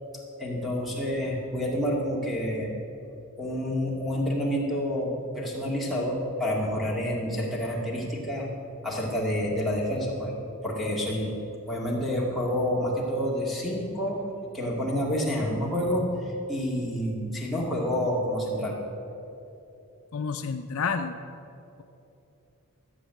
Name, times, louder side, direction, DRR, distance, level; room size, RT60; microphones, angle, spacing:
voice 1, 0.4-2.7 3.4-8.5 8.8-10.3 10.6-11.3 11.6-14.2 14.5-18.8, equal, ahead, -5 dB, 2.1 m, -28 dB
voice 2, 20.1-21.2, left 5 dB, 75° left, 7 dB, 0.5 m, -29 dB
13.5 x 7.4 x 7.6 m, 2.9 s
head